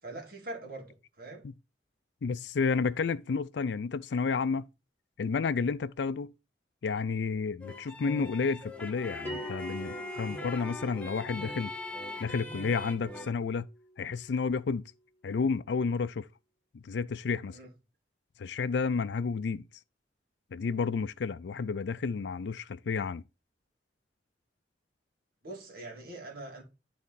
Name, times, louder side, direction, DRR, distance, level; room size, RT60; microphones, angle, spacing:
voice 1, 0.0-1.4 17.5-17.7 25.4-26.6, right 2 dB, 55° right, 2.8 m, -43 dB
voice 2, 2.2-4.7 5.2-6.3 6.8-11.7 12.2-13.7 14.0-14.8 15.2-16.3 16.8-17.6 18.4-19.6 20.5-23.2, left 5 dB, 75° left, 0.4 m, -31 dB
sound 1, 7.6-13.3, left 2 dB, 5° left, 1.2 m, -41 dB
Bell, 9.2-14.3, equal, 15° right, 3.8 m, -44 dB
12.0 x 4.2 x 4.1 m
head